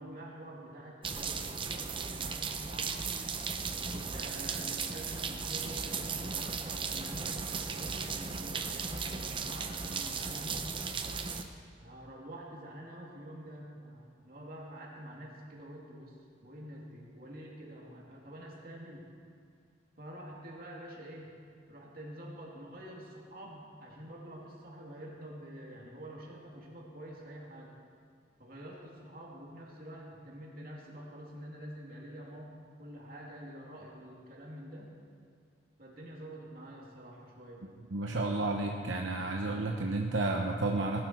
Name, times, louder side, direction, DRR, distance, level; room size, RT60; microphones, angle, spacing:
voice 1, 0.0-3.1 3.7-10.7 11.8-19.1 20.0-21.3 21.7-27.7 28.4-34.9 35.8-37.6, equal, 50° right, -3 dB, 2.8 m, -47 dB
sound 1, 1.0-11.4, right 5 dB, 25° right, 0.7 m, -36 dB
voice 2, 37.9-41.0, right 2 dB, 80° right, 1 dB, 1.0 m, -31 dB
18.5 x 12.0 x 4.6 m, 2.3 s
head